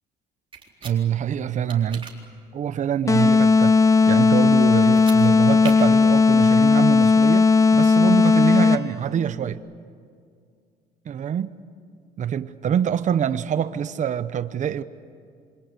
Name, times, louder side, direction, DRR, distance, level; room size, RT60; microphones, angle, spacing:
sound 1, 0.5-1.0 1.7-2.1 4.8-5.2 5.6-5.7, right 6 dB, 30° right, 4.0 m, -38 dB
voice 1, 0.8-2.1 2.5-9.6 11.0-11.6 12.2-14.8, right 9 dB, 45° right, 1.0 m, -25 dB
sound 2, 3.1-9.0, left 4 dB, 20° left, 0.9 m, -16 dB
27.5 x 26.0 x 8.2 m
cardioid pair, 110°, 17 cm